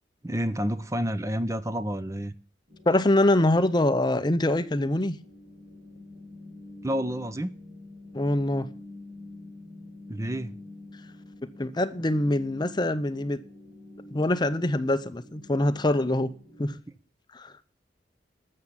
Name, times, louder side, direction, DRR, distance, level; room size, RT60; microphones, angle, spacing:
voice 1, 0.2-2.3 6.8-7.6 10.1-10.5, equal, 15° right, 0.6 m, -29 dB
sound 1, 2.7-16.8, left 1 dB, 35° right, 5.7 m, -47 dB
voice 2, 2.9-5.2 8.1-8.7 11.6-13.4 14.1-16.3 16.6-16.8 17.3-17.5, left 1 dB, 25° left, 0.6 m, -24 dB
13.0 x 7.4 x 8.1 m
head